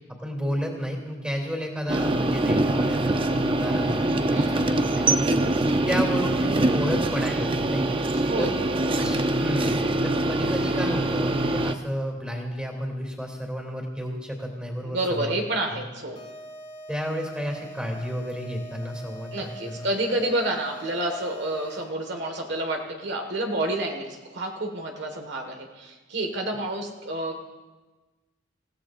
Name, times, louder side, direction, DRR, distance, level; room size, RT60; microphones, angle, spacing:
voice 1, 0.1-5.6 5.9-8.0 8.4-8.5 9.0-9.7 10.0-15.3 15.7-15.8 16.9-19.9, equal, 5° right, 1 dB, 2.7 m, -32 dB
sound 1, 1.9-11.7, right 2 dB, 25° right, 0.6 m, -24 dB
voice 2, 8.3-8.8 14.8-16.2 19.3-27.4, right 1 dB, 60° right, 3 dB, 1.6 m, -29 dB
sound 2, 16.1-22.1, right 1 dB, 35° left, 2.0 m, -42 dB
28.0 x 16.0 x 2.5 m, 1.2 s
head